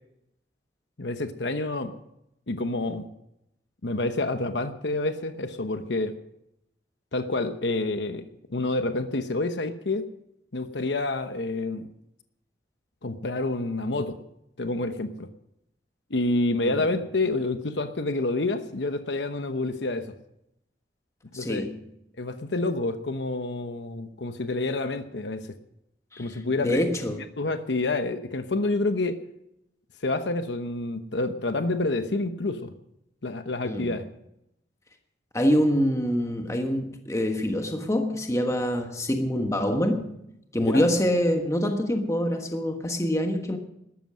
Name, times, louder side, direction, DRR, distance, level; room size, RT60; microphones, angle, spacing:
voice 1, 1.0-1.9 2.5-3.1 3.8-6.2 7.1-10.1 10.5-11.9 13.0-14.2 14.6-15.3 16.1-20.1 21.3-21.7 22.2-25.6 26.2-26.8 27.4-29.2 30.0-32.7 33.2-34.1 40.6-40.9, left 2 dB, 80° left, 1.0 m, -28 dB
voice 2, 21.3-21.8 26.1-27.2 33.6-34.0 35.3-40.1 40.5-43.6, equal, 15° left, 1.3 m, -25 dB
13.0 x 13.0 x 6.3 m
head